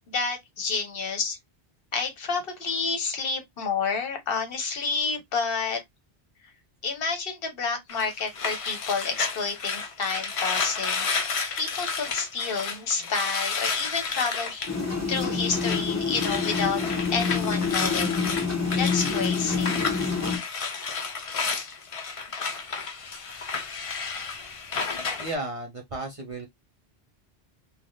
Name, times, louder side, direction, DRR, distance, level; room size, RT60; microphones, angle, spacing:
voice 1, 0.1-1.4 1.9-5.8 6.8-11.3 11.6-16.8 17.1-18.2 18.7-19.9, left 5 dB, 65° left, 1.0 m, -29 dB
sound 1, 7.9-15.9 16.1-25.3, left 5 dB, 50° left, 0.4 m, -31 dB
sound 2, 14.7-20.4, left 5 dB, 15° left, 0.7 m, -27 dB
voice 2, 25.2-26.5, right 2 dB, 40° right, 0.6 m, -33 dB
3.2 x 2.1 x 2.5 m
omnidirectional pair, 1.1 m